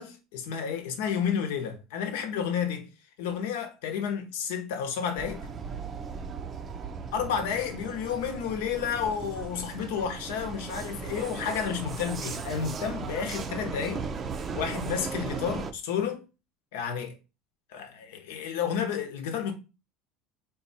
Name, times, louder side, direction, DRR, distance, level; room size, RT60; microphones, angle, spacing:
voice 1, 0.0-2.9 3.2-5.5 7.1-14.0 14.5-16.2 16.7-17.1 17.7-19.5, left 7 dB, 90° left, 0.9 m, -31 dB
Vehicle, 5.2-15.7, right 5 dB, 30° right, 0.4 m, -37 dB
4.0 x 2.3 x 4.1 m
supercardioid pair, 140°, 0 cm